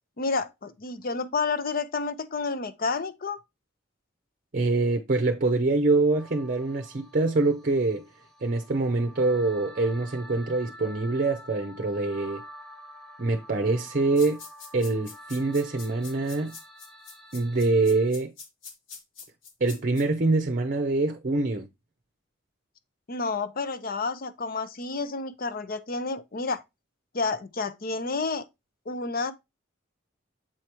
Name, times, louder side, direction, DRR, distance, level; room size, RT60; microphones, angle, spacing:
voice 1, 0.2-3.4 23.1-26.6 27.1-28.5 28.9-29.3, left 4 dB, 50° left, 0.7 m, -30 dB
voice 2, 4.5-8.0 8.4-12.4 13.2-14.4 14.7-16.6 17.3-18.3 19.6-21.7, right 3 dB, 45° right, 0.6 m, -25 dB
sound 1, 6.1-18.1, equal, ahead, 1.2 m, -48 dB
sound 2, 14.2-20.0, left 5 dB, 80° left, 1.8 m, -44 dB
7.6 x 4.7 x 3.0 m
head